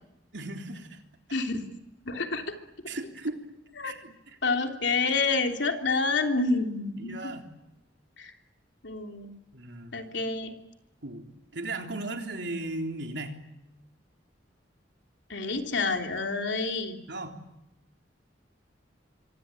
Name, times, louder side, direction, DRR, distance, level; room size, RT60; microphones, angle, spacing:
voice 1, 0.3-1.0 2.9-3.5 3.8-4.4 7.0-7.5 9.5-9.9 11.0-11.3 11.5-13.3 17.1-17.4, right 2 dB, 65° right, 4 dB, 3.7 m, -36 dB
voice 2, 1.3-1.7 2.0-2.5 3.8-3.9 4.4-7.3 8.2-8.3 8.8-9.3 9.9-10.5 15.3-17.0, left 3 dB, 70° left, 4 dB, 3.3 m, -28 dB
26.5 x 25.0 x 9.1 m, 0.89 s
head